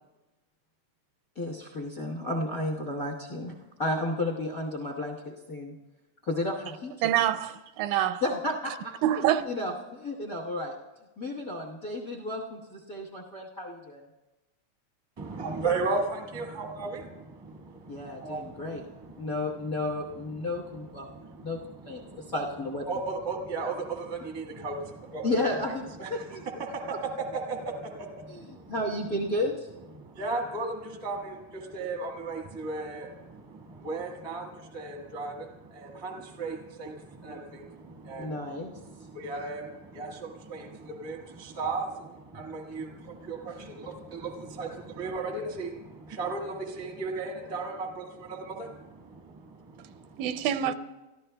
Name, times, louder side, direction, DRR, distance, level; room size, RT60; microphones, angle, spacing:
voice 1, 1.3-3.5 3.8-5.7 6.2-6.9 8.2-8.9 9.5-10.8 11.2-14.0 17.9-18.8 19.2-21.6 21.9-22.9 25.2-26.4 28.3-28.4 28.7-29.7 38.2-38.7 50.6-50.7, left 1 dB, 50° left, 1.1 m, -32 dB
voice 2, 7.0-8.2 9.0-9.4 50.2-50.7, right 11 dB, 85° right, 1.9 m, -26 dB
voice 3, 15.2-19.6 20.3-22.3 22.9-25.4 26.0-28.7 29.9-50.2, right 3 dB, 20° right, 0.6 m, -36 dB
30.0 x 14.0 x 2.3 m
omnidirectional pair, 3.3 m